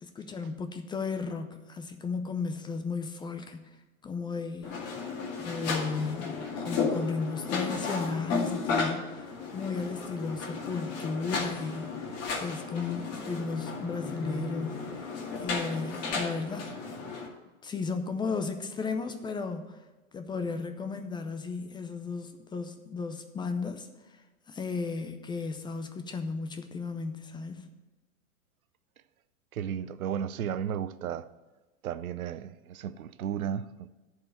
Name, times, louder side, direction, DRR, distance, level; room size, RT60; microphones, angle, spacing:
voice 1, 0.0-4.8 5.4-15.1 15.4-17.0 17.6-19.8 20.1-24.2 24.5-27.7, left 4 dB, 10° left, 0.4 m, -35 dB
sound 1, 4.6-17.3, left 4 dB, 35° left, 2.3 m, -34 dB
voice 2, 29.5-31.3 31.8-33.9, right 9 dB, 85° right, 0.6 m, -34 dB
10.5 x 4.7 x 7.9 m
hypercardioid pair, 115°, 41 cm